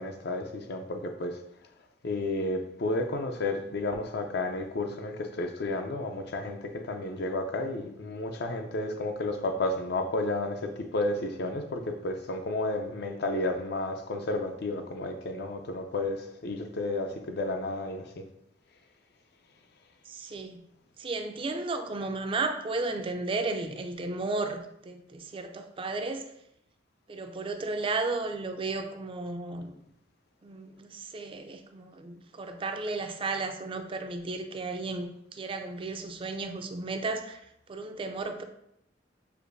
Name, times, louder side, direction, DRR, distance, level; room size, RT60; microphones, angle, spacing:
voice 1, 0.0-1.4 2.0-18.2, left 2 dB, 60° left, 5 dB, 0.5 m, -32 dB
voice 2, 20.1-20.6 21.0-26.3 27.1-29.8 30.4-38.4, right 3 dB, 30° right, 6 dB, 0.4 m, -34 dB
6.5 x 2.5 x 2.6 m, 0.77 s
head